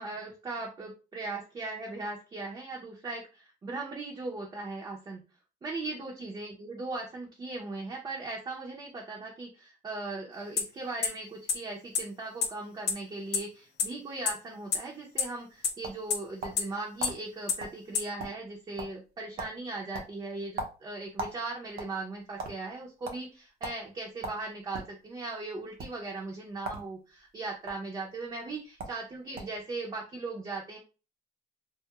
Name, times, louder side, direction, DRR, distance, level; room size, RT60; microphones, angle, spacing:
voice 1, 0.0-5.2 5.6-30.8, right 3 dB, 25° right, -2 dB, 0.6 m, -38 dB
sound 1, 10.6-10.7 11.0-11.1 11.5-11.6 11.9-12.0 12.4-12.5 12.9-13.0 13.3-13.4 13.8-13.9 14.3-14.4 14.7-14.8 15.2-15.3 15.6-15.7 16.1-16.2 16.6-16.7 17.0-17.1 17.5-17.6 17.9-18.0, left 7 dB, 80° left, 0.6 m, -25 dB
sound 2, 15.4-16.7 17.0-17.2 17.6-17.8 18.0-18.5 18.8-19.1 19.4-19.6 19.9-21.4 21.7-22.5 23.0-23.2 23.6-23.8 24.2-24.9 25.7-25.9 26.6-26.9 27.2-27.7 28.5-28.6 28.8-29.0 29.4-29.6, right 2 dB, 60° right, 0.7 m, -38 dB
2.3 x 2.0 x 2.9 m, 0.33 s
cardioid pair, 110°, 17 cm